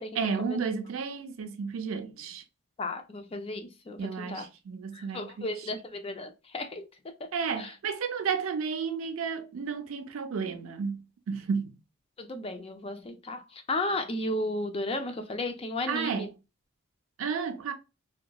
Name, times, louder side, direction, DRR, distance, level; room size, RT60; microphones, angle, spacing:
voice 1, 0.1-2.4 4.0-5.7 7.3-11.8 15.9-16.3 17.2-17.7, right 5 dB, 80° right, 0.4 m, -32 dB
voice 2, 2.8-4.5 4.9-6.9 7.2-7.3 7.6-7.7 12.2-16.3, left 2 dB, 25° left, 0.4 m, -34 dB
2.8 x 2.3 x 2.2 m
head